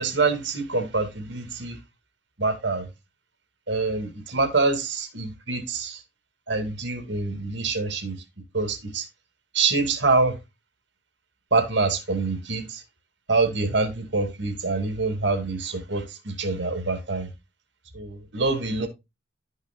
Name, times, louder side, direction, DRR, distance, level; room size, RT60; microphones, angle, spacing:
voice 1, 0.0-1.8 2.4-2.9 3.7-6.0 6.5-8.2 8.5-9.1 9.5-10.4 11.5-12.8 13.3-17.3 17.9-18.9, right 3 dB, 60° right, 2.3 m, -25 dB
12.5 x 6.3 x 2.3 m
head